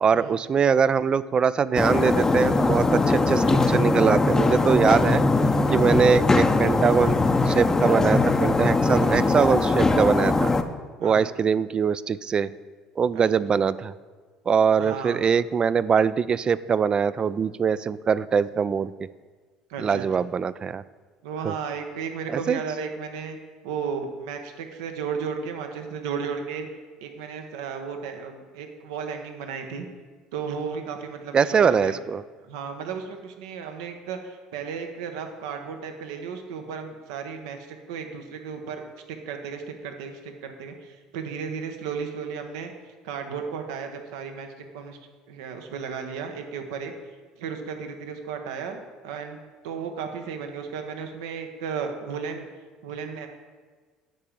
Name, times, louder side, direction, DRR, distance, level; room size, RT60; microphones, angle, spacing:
voice 1, 0.0-5.2 5.7-10.5 11.0-12.5 13.0-13.9 14.5-18.9 19.8-20.8 21.4-21.6 22.3-22.6 31.3-32.2, right 6 dB, 35° right, 17 dB, 0.3 m, -22 dB
sound 1, 1.8-10.6, left 3 dB, 20° left, 0.6 m, -21 dB
voice 2, 14.8-15.2 19.7-20.1 21.2-23.4 23.6-26.7 27.0-29.9 30.3-32.0 32.5-42.7 43.0-44.5 44.7-45.0 45.3-46.9 47.4-49.4 49.6-52.4 52.8-53.3, right 6 dB, 80° right, 5 dB, 0.9 m, -34 dB
9.3 x 3.9 x 7.2 m, 1.4 s
hypercardioid pair, 70°, 3 cm